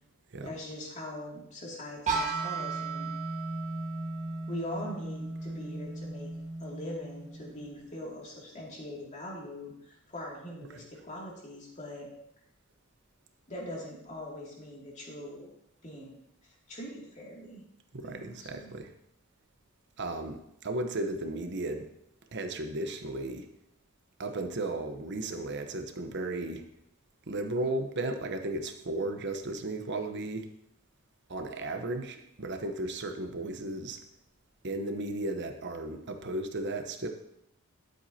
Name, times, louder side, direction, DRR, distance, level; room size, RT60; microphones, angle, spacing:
voice 1, 0.4-3.1 4.5-6.3 6.6-12.1 13.5-15.5 15.8-17.6 18.0-18.7, left 1 dB, 35° left, -3 dB, 2.4 m, -42 dB
sound 1, 2.1-7.9, right 3 dB, 35° right, 1.6 m, -35 dB
voice 2, 17.9-18.9 20.0-21.9 22.3-23.5 24.2-26.6 27.3-30.5 31.3-34.0 34.6-37.1, right 2 dB, 55° right, 6 dB, 0.9 m, -35 dB
12.0 x 7.9 x 2.8 m, 0.78 s
head